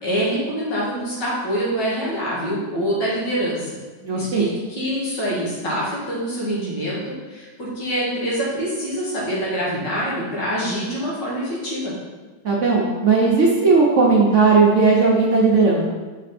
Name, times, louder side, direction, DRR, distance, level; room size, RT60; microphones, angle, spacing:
voice 1, 0.0-3.8 4.1-11.9, equal, 75° left, -6 dB, 2.5 m, -25 dB
voice 2, 4.0-4.5 12.4-15.8, right 4 dB, 55° right, -2 dB, 1.0 m, -16 dB
6.3 x 4.3 x 4.2 m, 1.3 s
omnidirectional pair, 1.9 m